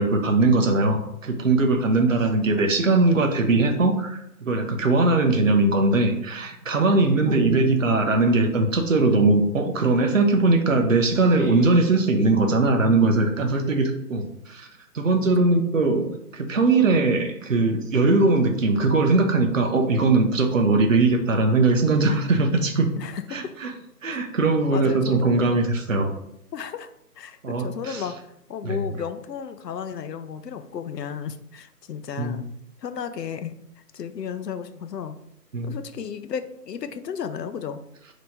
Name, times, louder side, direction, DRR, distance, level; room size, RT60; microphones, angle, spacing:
voice 1, 0.0-14.7 14.9-22.9 23.3-23.7 24.0-26.1 27.4-28.0 28.6-28.8 32.2-32.4 35.5-35.8, right 3 dB, 55° right, 4 dB, 0.6 m, -20 dB
voice 2, 23.0-23.4 24.1-24.2 24.7-25.3 26.5-26.9 27.2-28.2 28.5-32.5 32.8-33.5 33.9-35.2 35.6-37.8, left 7 dB, 80° left, 10 dB, 0.6 m, -33 dB
3.5 x 2.9 x 2.8 m, 0.76 s
figure-of-eight pair, 175°, 48 cm